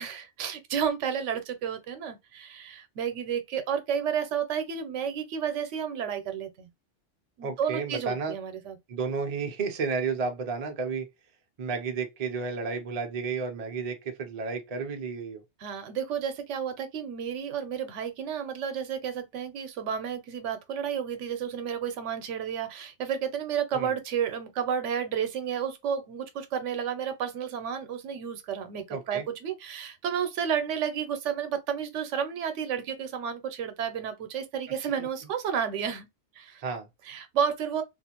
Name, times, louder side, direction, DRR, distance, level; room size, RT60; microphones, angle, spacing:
voice 1, 0.0-6.7 7.4-8.8 15.6-36.1 36.4-36.6 37.0-37.8, right 8 dB, 85° right, 0.9 m, -31 dB
voice 2, 7.4-8.3 8.9-11.1 11.6-15.4 23.7-23.9 28.9-29.3 35.0-35.1 36.6-36.9, right 4 dB, 45° right, 0.5 m, -32 dB
2.4 x 2.4 x 2.8 m
omnidirectional pair, 1.2 m